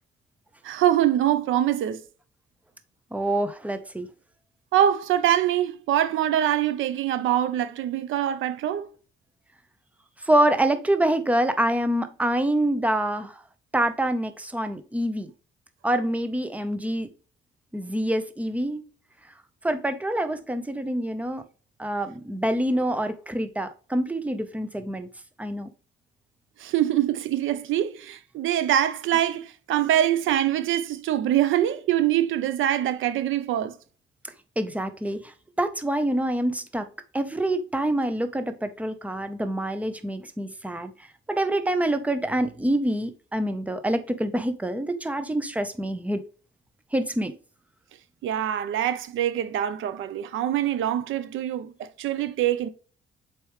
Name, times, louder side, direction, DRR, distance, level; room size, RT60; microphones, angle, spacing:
voice 1, 0.6-2.0 4.7-8.9 26.6-33.7 48.2-52.7, right 11 dB, 80° right, 0.8 m, -24 dB
voice 2, 3.1-4.1 10.2-13.4 13.7-15.3 15.8-17.1 17.7-18.8 19.6-21.4 21.8-25.1 25.4-25.7 34.6-35.3 35.6-36.9 37.1-40.9 41.3-46.2 46.9-47.3, right 1 dB, 5° right, 0.9 m, -26 dB
6.7 x 4.7 x 3.2 m
cardioid pair, 90°, 20 cm